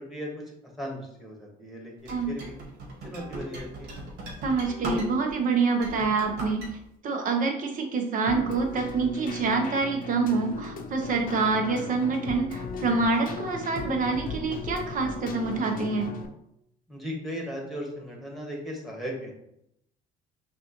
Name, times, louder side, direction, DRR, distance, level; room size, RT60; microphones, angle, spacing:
voice 1, 0.0-2.5 3.0-4.0 16.9-19.3, equal, ahead, -1 dB, 1.4 m, -37 dB
sound 1, 2.0-5.4 5.7-6.7, right 1 dB, 85° right, 1.3 m, -37 dB
voice 2, 4.4-6.7 7.0-16.1, right 4 dB, 50° right, 4 dB, 0.9 m, -26 dB
Keyboard (musical), 8.3-16.3, left 4 dB, 55° left, 0.7 m, -37 dB
6.0 x 2.5 x 3.0 m, 0.78 s
cardioid pair, 110°, 17 cm